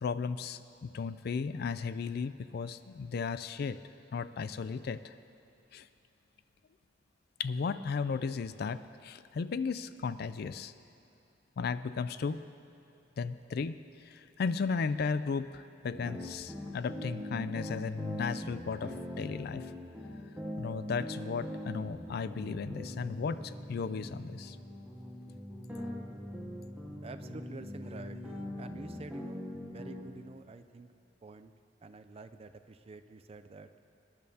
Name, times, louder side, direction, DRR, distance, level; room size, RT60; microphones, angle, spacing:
voice 1, 0.0-3.8 4.1-5.1 5.7-5.9 7.4-10.7 11.6-12.4 13.2-13.8 14.1-19.7 20.6-24.6, left 5 dB, 55° left, 13 dB, 0.4 m, -35 dB
sound 1, 15.9-30.1, left 1 dB, 5° right, 0.8 m, -42 dB
voice 2, 27.0-31.5 31.8-33.7, right 3 dB, 30° right, 9 dB, 0.4 m, -49 dB
20.5 x 10.5 x 2.8 m, 2.7 s
head